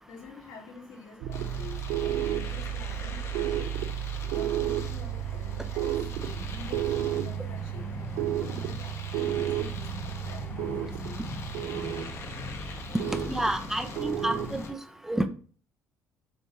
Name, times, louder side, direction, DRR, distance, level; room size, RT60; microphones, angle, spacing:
voice 1, 0.1-3.7 4.2-11.4, left 4 dB, 85° left, 2.6 m, -47 dB
sound 1, 1.2-14.6, right 11 dB, 80° right, 0.4 m, -32 dB
Domestic sounds home sounds, 1.3-14.7, left 5 dB, 50° left, 1.1 m, -45 dB
sound 2, 6.1-14.8, left 5 dB, 25° left, 0.5 m, -42 dB
voice 2, 13.3-14.8 15.1-15.3, right 1 dB, 5° right, 0.7 m, -29 dB
7.0 x 3.5 x 4.1 m
cardioid pair, 115°, 6 cm